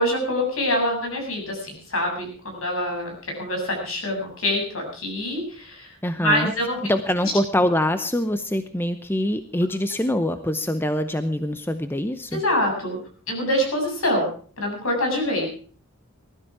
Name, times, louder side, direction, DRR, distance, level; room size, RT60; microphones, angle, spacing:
voice 1, 0.0-6.8 7.2-7.3 12.3-13.0 13.3-14.3 14.6-15.5, left 1 dB, 65° left, 3 dB, 7.5 m, -25 dB
voice 2, 6.0-6.5 6.8-12.4, left 1 dB, 10° left, 10 dB, 0.7 m, -24 dB
20.0 x 13.0 x 4.8 m, 0.43 s
head